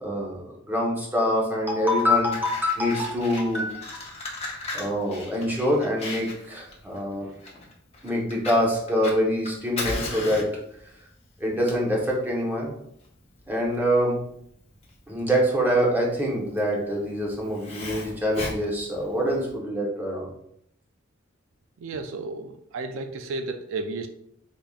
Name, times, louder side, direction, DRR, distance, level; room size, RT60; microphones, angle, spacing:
voice 1, 0.0-4.1 4.7-7.3 8.0-10.5 11.4-12.7 13.5-14.2 15.1-20.3, equal, 10° right, -3 dB, 0.9 m, -25 dB
Fire, 1.8-19.5, left 2 dB, 30° left, 0.8 m, -38 dB
voice 2, 21.8-24.1, right 3 dB, 80° right, 7 dB, 0.3 m, -33 dB
3.6 x 3.5 x 2.3 m, 0.71 s
head